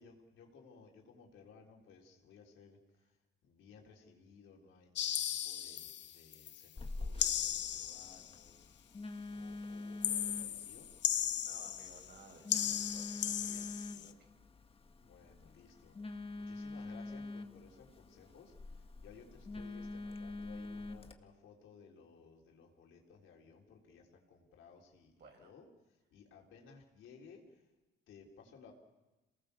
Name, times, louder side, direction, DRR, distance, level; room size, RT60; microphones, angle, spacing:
voice 1, 0.0-2.8 3.4-8.7 9.3-10.9 15.0-25.7 26.1-27.6 28.1-28.7, left 5 dB, 80° left, 0 dB, 4.1 m, -59 dB
sound 1, 5.0-6.6 7.2-8.4 10.0-12.2 12.5-14.1, left 10 dB, 65° left, 0.9 m, -36 dB
Telephone, 6.8-21.1, left 2 dB, 30° left, 1.7 m, -46 dB
voice 2, 11.2-14.3 25.2-25.5, right 3 dB, 60° right, 3 dB, 6.2 m, -59 dB
27.0 x 19.0 x 7.0 m, 1.1 s
cardioid pair, 90°, 20 cm